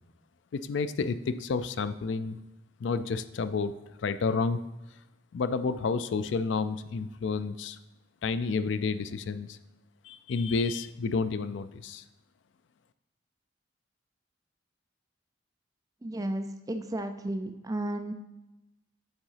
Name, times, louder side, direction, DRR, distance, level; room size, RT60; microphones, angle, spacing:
voice 1, 0.5-2.4 2.8-4.6 5.3-7.8 8.2-9.6 10.0-12.0, left 4 dB, 70° left, 13 dB, 0.4 m, -30 dB
voice 2, 16.0-18.1, right 1 dB, 20° right, 7 dB, 0.4 m, -33 dB
8.9 x 3.8 x 5.6 m, 0.99 s
head